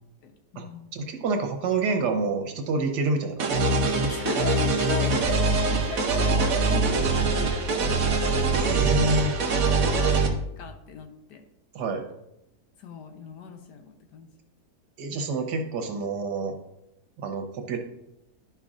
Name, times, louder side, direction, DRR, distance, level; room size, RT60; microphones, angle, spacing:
voice 1, 0.2-0.9 4.1-8.1 8.7-9.1 9.4-10.3 10.6-11.4 12.8-14.3, left 5 dB, 85° left, 5 dB, 1.5 m, -38 dB
voice 2, 0.9-3.9 8.6-9.4 11.7-12.0 15.0-16.5 17.2-17.8, right 3 dB, 85° right, 5 dB, 1.6 m, -28 dB
sound 1, 3.4-10.3, right 3 dB, 60° right, 1.2 m, -23 dB
11.0 x 5.6 x 2.5 m, 0.85 s
omnidirectional pair, 1.8 m